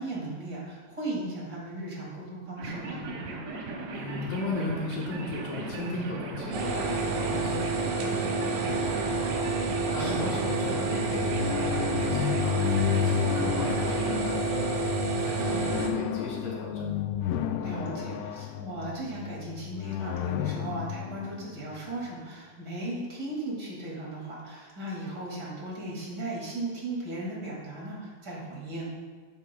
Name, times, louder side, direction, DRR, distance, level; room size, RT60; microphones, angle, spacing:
voice 1, 0.0-3.0 10.0-10.4 15.4-15.6 17.6-28.9, right 1 dB, 35° right, -5 dB, 1.7 m, -37 dB
sound 1, 2.6-14.2, right 2 dB, 70° right, 2.3 m, -37 dB
voice 2, 3.9-9.3 9.9-12.6 12.8-14.9 15.2-16.9, left 2 dB, 70° left, -3 dB, 2.4 m, -37 dB
sound 2, 6.5-15.9, right 3 dB, 85° right, 3.5 m, -29 dB
sound 3, 10.6-22.3, left 10 dB, 85° left, 2.3 m, -32 dB
12.5 x 9.4 x 2.3 m, 1.5 s
omnidirectional pair, 5.1 m